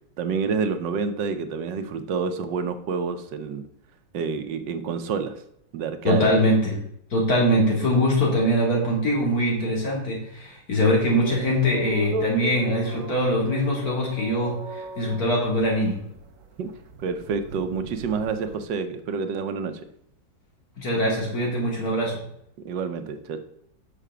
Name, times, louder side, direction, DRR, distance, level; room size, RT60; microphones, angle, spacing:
voice 1, 0.2-3.6 4.1-5.4 5.7-6.5 16.6-16.7 17.0-19.8 22.6-23.4, right 5 dB, 80° right, 9 dB, 1.5 m, -28 dB
voice 2, 6.0-6.8 7.1-16.0 20.8-22.2, equal, 55° left, -2 dB, 2.9 m, -22 dB
sound 1, 11.1-18.6, right 2 dB, 50° right, 1.3 m, -36 dB
6.2 x 6.0 x 6.7 m, 0.72 s
omnidirectional pair, 1.9 m